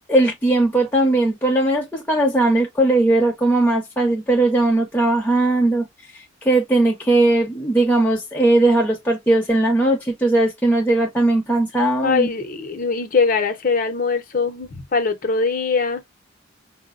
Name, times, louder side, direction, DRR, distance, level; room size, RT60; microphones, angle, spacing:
voice 1, 0.1-5.9 6.4-12.3, right 2 dB, 10° left, 0.7 m, -18 dB
voice 2, 12.0-16.0, left 4 dB, 45° left, 0.6 m, -21 dB
4.6 x 2.0 x 2.3 m
head